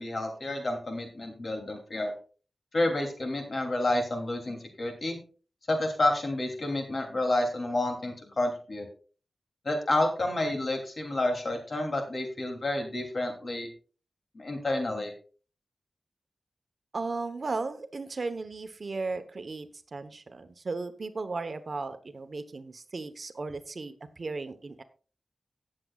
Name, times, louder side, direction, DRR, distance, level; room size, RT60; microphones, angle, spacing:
voice 1, 0.0-2.1 2.7-5.2 5.7-8.9 9.6-13.7 14.3-15.1, left 1 dB, 55° left, 3 dB, 2.9 m, -29 dB
voice 2, 16.9-24.8, right 3 dB, 55° right, 9 dB, 1.0 m, -36 dB
17.5 x 7.5 x 2.4 m, 0.38 s
wide cardioid pair, 85°, 0 cm